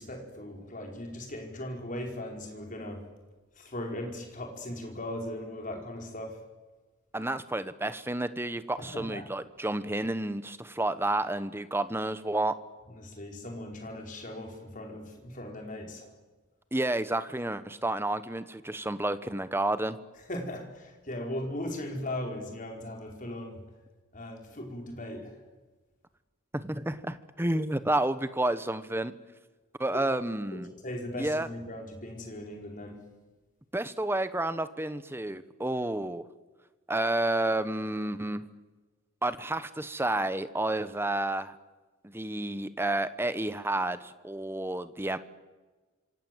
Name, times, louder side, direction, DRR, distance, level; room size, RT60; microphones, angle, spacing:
voice 1, 0.0-3.1 3.5-6.4 8.8-9.3 12.9-16.1 20.3-23.6 24.1-25.4 30.5-33.0, left 1 dB, 40° left, 2 dB, 5.1 m, -38 dB
voice 2, 7.1-12.5 16.7-20.0 26.5-29.1 29.8-30.7 31.2-31.5 33.7-36.2 36.9-38.4 39.2-41.5 42.0-45.2, right 1 dB, 10° right, 13 dB, 1.1 m, -30 dB
27.0 x 26.0 x 8.0 m, 1.3 s
head